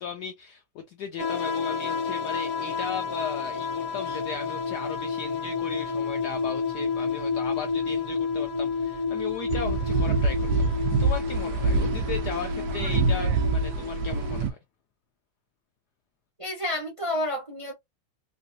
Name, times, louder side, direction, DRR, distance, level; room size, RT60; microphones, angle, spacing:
voice 1, 0.0-14.6, left 6 dB, 75° left, 0.9 m, -36 dB
sound 1, 1.2-14.4, left 5 dB, 55° left, 1.3 m, -30 dB
sound 2, 9.5-14.5, right 3 dB, 75° right, 0.8 m, -25 dB
voice 2, 16.4-17.7, left 1 dB, 30° right, 0.6 m, -30 dB
3.3 x 2.6 x 2.6 m
omnidirectional pair, 2.2 m